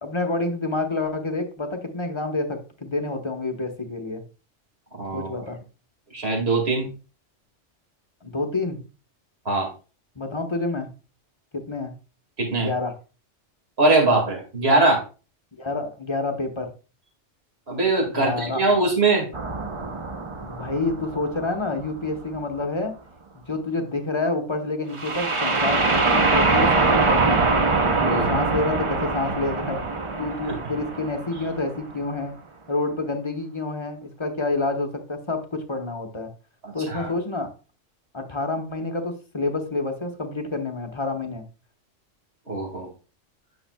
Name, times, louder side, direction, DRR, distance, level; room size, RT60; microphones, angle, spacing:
voice 1, 0.0-4.2 5.1-5.6 8.2-8.8 10.2-10.9 11.5-11.9 12.6-12.9 15.5-16.7 18.1-18.6 20.4-22.9 23.5-27.6 28.1-29.8 30.2-32.3 32.7-36.3 36.7-37.5 38.1-41.4, left 2 dB, 25° left, 4 dB, 0.9 m, -28 dB
voice 2, 4.9-5.3 6.1-6.9 9.5-9.7 12.4-12.7 13.8-15.0 17.7-19.3 28.0-28.4 30.5-30.6 36.6-37.1 42.5-42.9, right 2 dB, 60° right, 1 dB, 2.2 m, -22 dB
sound 1, 19.3-22.2 24.9-31.8, right 3 dB, 30° right, 0.7 m, -23 dB
8.8 x 6.1 x 2.2 m, 0.34 s
omnidirectional pair, 1.2 m